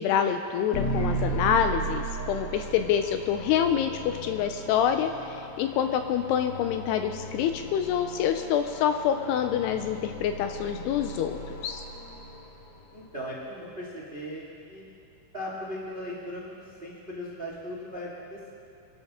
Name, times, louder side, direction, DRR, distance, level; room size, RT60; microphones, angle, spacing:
voice 1, 0.0-11.8, left 8 dB, 80° left, 7 dB, 2.5 m, -26 dB
sound 1, 0.7-12.9, right 1 dB, 65° left, 3.3 m, -36 dB
voice 2, 12.9-14.8 15.3-18.5, equal, 65° right, -5 dB, 0.5 m, -38 dB
25.5 x 12.0 x 3.7 m, 2.7 s
omnidirectional pair, 5.1 m